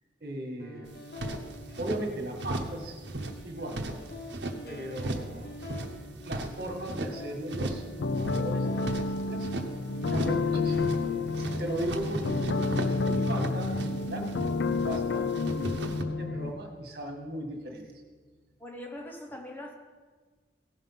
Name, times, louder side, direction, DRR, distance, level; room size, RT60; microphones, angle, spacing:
voice 1, 0.2-0.9 1.8-3.0 3.4-4.0 4.7-5.5 6.1-7.9 8.2-8.9 9.2-9.5 10.1-10.9 11.4-12.4 13.0-14.3 14.6-17.9, right 1 dB, 60° right, 2 dB, 1.7 m, -37 dB
sound 1, 0.6-18.6, left 1 dB, 55° left, 1.1 m, -46 dB
sound 2, 0.9-2.0 2.4-2.8 3.0-4.6 4.9-5.3 5.6-7.1 7.5-7.9 8.1-9.7 10.0-10.4 10.7-11.1 11.3-15.0 15.3-16.0, right 1 dB, 80° right, 1.0 m, -36 dB
sound 3, 8.0-16.5, left 3 dB, 80° left, 0.5 m, -30 dB
voice 2, 18.6-19.7, left 1 dB, 10° left, 3 dB, 0.8 m, -42 dB
16.5 x 5.5 x 5.7 m, 1.5 s
head